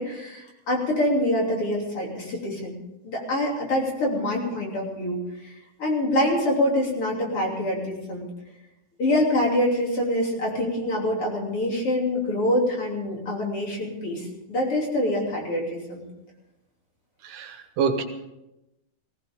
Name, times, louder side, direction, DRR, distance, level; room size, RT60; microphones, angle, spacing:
voice 1, 0.0-2.8 3.0-5.2 5.8-8.3 9.0-16.0, left 1 dB, 45° left, -2 dB, 3.9 m, -25 dB
voice 2, 17.2-18.0, right 6 dB, 80° right, 6 dB, 2.9 m, -26 dB
20.0 x 17.0 x 3.7 m, 0.94 s
omnidirectional pair, 3.7 m